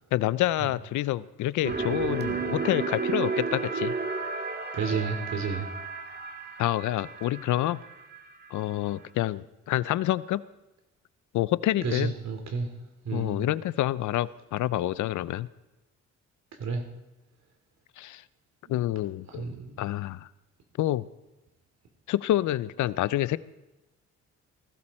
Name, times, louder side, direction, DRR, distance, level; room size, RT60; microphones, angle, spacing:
voice 1, 0.1-3.9 6.6-7.8 8.5-10.4 11.3-12.1 13.1-15.5 18.0-18.2 18.7-19.4 19.8-20.3 20.8-21.0 22.1-23.4, left 14 dB, 75° left, 18 dB, 0.6 m, -27 dB
sound 1, 1.6-8.6, right 4 dB, 35° right, 2.0 m, -32 dB
voice 2, 4.7-5.7 11.8-12.7 13.0-13.4 16.6-16.8 18.6-18.8 19.3-19.8, right 5 dB, 65° right, 5 dB, 3.1 m, -31 dB
19.5 x 15.0 x 4.3 m, 1.0 s
cardioid pair, 90°, 30 cm